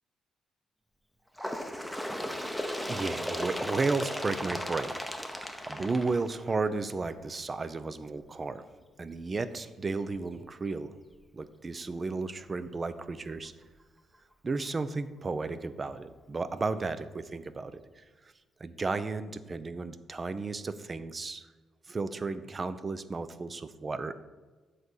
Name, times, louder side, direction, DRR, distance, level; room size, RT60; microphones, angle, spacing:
Bird, 1.4-6.8 7.7-7.8 8.2-8.3 9.1-9.2 10.1-10.2 11.1-11.2, equal, ahead, 0.8 m, -36 dB
voice 1, 2.9-5.4 5.7-8.6 9.0-10.9 11.3-13.5 14.4-18.0 18.6-21.5 21.9-24.2, right 3 dB, 30° right, 13 dB, 0.5 m, -33 dB
7.6 x 4.0 x 6.3 m, 1.3 s
cardioid pair, 90°, 0 cm